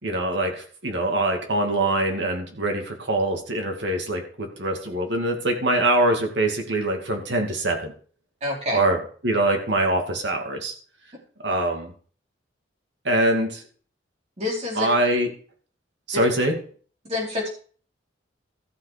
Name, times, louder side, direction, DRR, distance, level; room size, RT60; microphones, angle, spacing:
voice 1, 0.0-7.9 8.7-10.7 11.4-11.9 13.0-13.6 14.8-15.3 16.1-16.6, right 1 dB, 65° right, 3 dB, 2.5 m, -23 dB
voice 2, 8.4-8.8 14.4-14.9 17.1-17.5, left 2 dB, 35° right, -3 dB, 4.7 m, -27 dB
14.0 x 7.1 x 5.2 m, 0.43 s
head